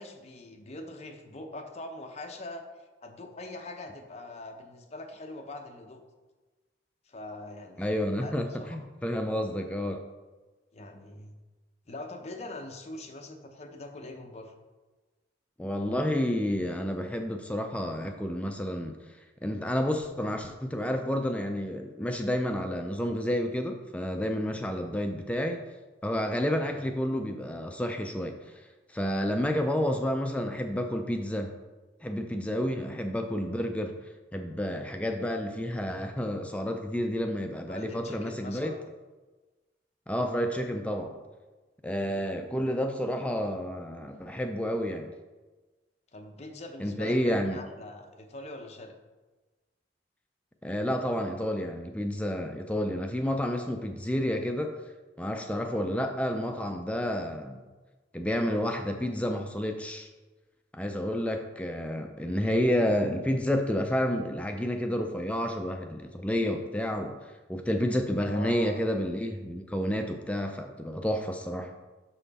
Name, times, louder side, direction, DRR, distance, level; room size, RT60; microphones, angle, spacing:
voice 1, 0.0-6.0 7.1-8.8 10.7-11.4 11.9-14.5 24.6-24.8 32.7-33.0 37.7-38.8 42.0-42.3 46.1-48.9 55.7-55.9 68.2-68.8, left 2 dB, 35° left, 4 dB, 0.7 m, -43 dB
voice 2, 7.8-10.0 15.6-19.0 19.4-25.6 26.0-31.5 32.0-34.0 34.3-38.7 40.1-41.2 41.8-45.1 46.8-47.6 50.6-54.7 55.2-57.6 58.1-60.1 60.7-71.7, equal, 5° left, 4 dB, 0.4 m, -30 dB
6.0 x 5.6 x 4.1 m, 1.2 s
head